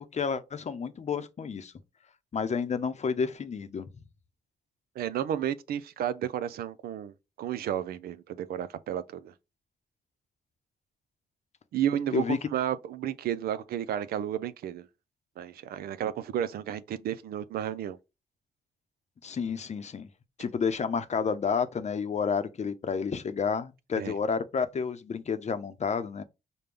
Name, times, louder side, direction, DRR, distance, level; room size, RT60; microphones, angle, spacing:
voice 1, 0.1-1.7 2.3-3.9 12.1-12.4 19.2-20.1 20.4-26.2, left 6 dB, 50° left, 0.7 m, -30 dB
voice 2, 5.0-9.3 11.7-14.9 15.4-18.0 24.0-24.1, right 10 dB, 85° right, 0.5 m, -32 dB
5.2 x 2.2 x 3.3 m
cardioid pair, 65°, 15 cm